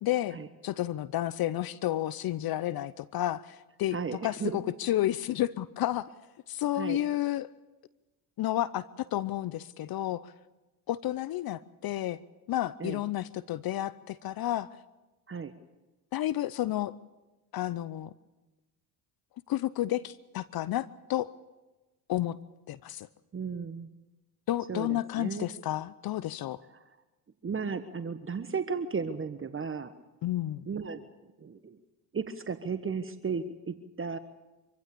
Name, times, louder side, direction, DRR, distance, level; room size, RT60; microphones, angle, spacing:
voice 1, 0.0-4.0 4.2-6.1 6.5-7.5 8.4-10.3 10.9-12.2 12.5-14.8 16.1-16.9 17.5-18.1 19.5-21.3 22.1-22.4 22.7-23.1 24.5-26.6 30.2-30.7, left 14 dB, 50° left, 18 dB, 0.8 m, -31 dB
voice 2, 3.9-4.6 6.8-7.0 12.8-13.0 15.3-15.5 23.3-23.9 24.7-25.4 26.7-26.8 27.4-29.9 30.7-31.0 31.4-31.8 32.1-34.2, right 5 dB, 25° right, 10 dB, 1.3 m, -34 dB
25.0 x 15.5 x 8.6 m, 1.1 s
hypercardioid pair, 70°, 46 cm